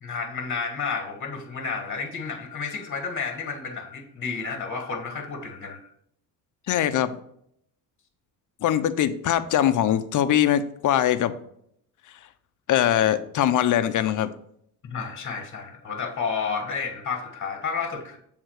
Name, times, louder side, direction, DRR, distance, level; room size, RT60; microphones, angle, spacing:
voice 1, 0.0-5.9 14.8-18.2, left 5 dB, 30° left, 5 dB, 1.4 m, -31 dB
voice 2, 6.7-7.2 8.6-11.3 12.7-14.3, left 11 dB, 55° left, 11 dB, 0.7 m, -22 dB
7.9 x 3.6 x 6.4 m, 0.70 s
cardioid pair, 100°, 38 cm